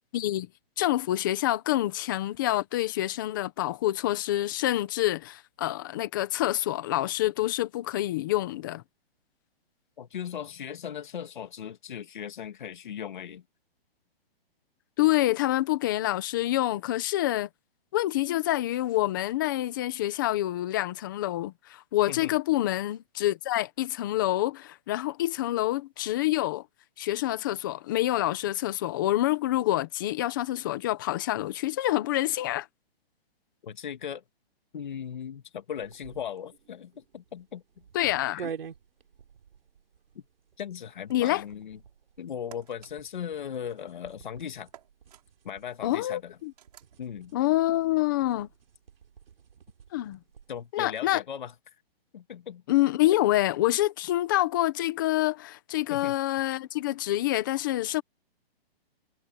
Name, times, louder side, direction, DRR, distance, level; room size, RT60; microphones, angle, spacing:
voice 1, 0.1-0.5 0.8-8.8 15.0-17.5 17.9-26.6 27.0-32.7 37.9-38.4 41.1-41.4 45.8-46.5 47.3-48.5 49.9-50.2 50.7-51.2 52.7-58.0, left 15 dB, 20° left, 1.3 m, -27 dB
voice 2, 10.0-13.4 22.1-22.3 33.6-34.2 34.7-37.6 38.3-38.5 40.1-40.2 40.6-41.8 42.2-44.7 45.4-46.4 47.0-47.3 50.5-51.5 52.1-52.6 55.9-56.2, left 8 dB, 50° left, 2.7 m, -38 dB
sound 1, 35.8-50.7, right 7 dB, 70° right, 3.8 m, -48 dB
sound 2, 41.1-41.6 42.5-42.9 44.7-45.2 46.6-47.0, right 10 dB, 40° right, 6.3 m, -52 dB
hypercardioid pair, 180°, 30 cm